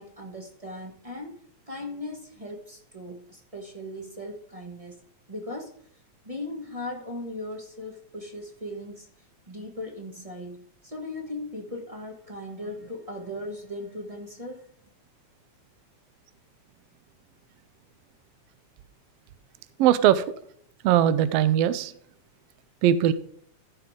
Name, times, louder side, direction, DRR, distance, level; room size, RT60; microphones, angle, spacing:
voice 1, 0.0-1.4 1.7-5.0 5.3-5.7 6.2-14.7, left 1 dB, 40° right, 1 dB, 0.4 m, -38 dB
voice 2, 19.8-20.2 20.8-21.9 22.8-23.1, right 11 dB, 85° right, 15 dB, 1.4 m, -20 dB
14.5 x 5.9 x 3.6 m, 0.62 s
omnidirectional pair, 3.4 m